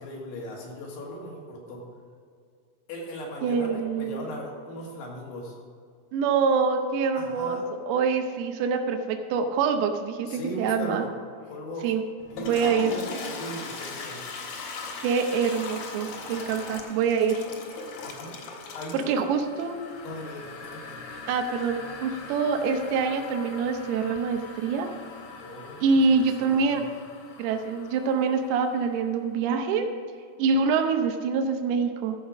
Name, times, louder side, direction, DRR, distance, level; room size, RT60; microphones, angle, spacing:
voice 1, 0.0-1.8 2.9-5.6 7.1-7.7 10.3-11.1 11.4-11.9 12.3-14.2 18.0-18.4 18.7-19.3 20.0-21.0 25.4-26.8, equal, 85° left, -2 dB, 3.9 m, -38 dB
voice 2, 3.4-4.3 6.1-7.6 7.9-11.0 11.8-12.0 12.5-12.9 15.0-17.4 18.9-19.8 21.3-24.9 25.8-26.9 27.4-29.9 30.4-32.2, right 5 dB, 80° right, 5 dB, 2.7 m, -25 dB
Toilet flush, 12.2-28.9, left 3 dB, 60° left, 2.0 m, -40 dB
13.5 x 4.9 x 6.3 m, 2.1 s
omnidirectional pair, 4.6 m